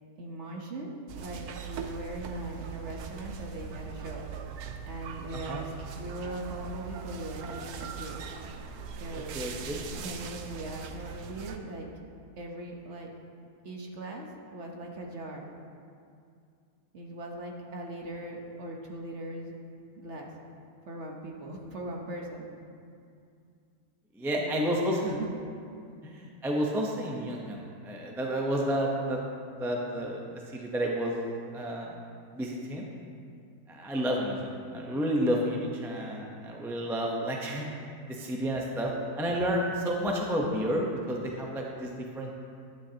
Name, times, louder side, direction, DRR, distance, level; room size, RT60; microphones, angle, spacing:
voice 1, 0.2-4.3 4.8-8.2 8.9-9.4 10.0-11.9 12.4-13.1 13.6-15.5 16.9-19.6 20.0-20.3 20.9-22.5 24.3-25.3, right 1 dB, 50° right, 0 dB, 1.2 m, -40 dB
sound 1, 1.1-11.6, right 6 dB, 75° right, 1.1 m, -40 dB
voice 2, 9.3-9.8 24.1-25.2 26.0-29.2 29.6-31.2 31.5-32.0 32.3-32.9 33.7-37.7 38.1-42.4, equal, 5° right, -1 dB, 0.5 m, -31 dB
11.5 x 9.7 x 2.9 m, 2.4 s
omnidirectional pair, 1.7 m